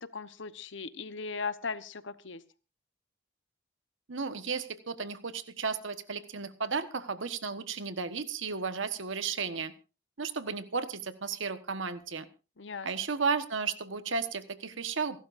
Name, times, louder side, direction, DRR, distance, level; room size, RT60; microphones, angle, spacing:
voice 1, 0.0-2.4 12.6-12.9, left 4 dB, 75° left, 13 dB, 1.0 m, -38 dB
voice 2, 4.1-9.7 10.2-12.3 12.8-15.2, right 5 dB, 85° right, 10 dB, 1.3 m, -34 dB
28.0 x 12.0 x 2.6 m, 0.32 s
head